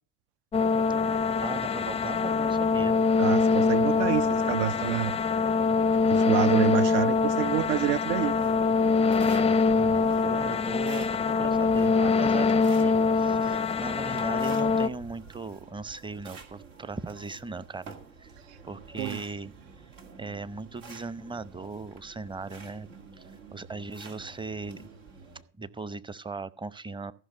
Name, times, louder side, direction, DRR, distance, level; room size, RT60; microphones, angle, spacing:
sound 1, 0.5-14.9, left 4 dB, 15° left, 0.5 m, -24 dB
voice 1, 1.4-3.0 9.8-18.3 18.6-19.5 19.8-19.9 20.2-22.9 23.1-24.9 25.6-27.1, right 4 dB, 15° right, 0.7 m, -38 dB
voice 2, 3.2-5.1 6.1-8.4 19.0-19.2, right 14 dB, 65° right, 0.5 m, -28 dB
sound 2, 8.3-25.4, right 4 dB, 85° right, 2.1 m, -49 dB
15.0 x 5.9 x 6.6 m
hypercardioid pair, 65°, 38 cm